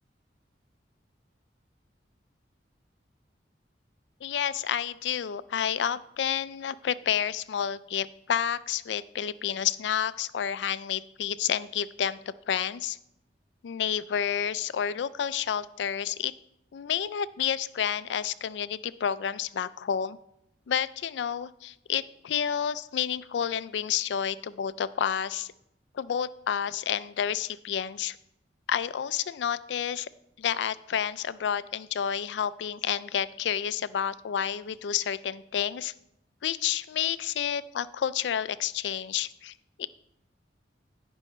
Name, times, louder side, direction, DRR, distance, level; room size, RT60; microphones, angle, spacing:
voice 1, 4.2-12.2 12.5-13.0 13.6-16.3 16.7-20.2 20.7-25.5 25.9-28.2 28.7-30.1 30.4-35.9 36.4-39.9, left 9 dB, 85° left, 16 dB, 0.4 m, -30 dB
16.5 x 5.4 x 3.1 m, 0.80 s
head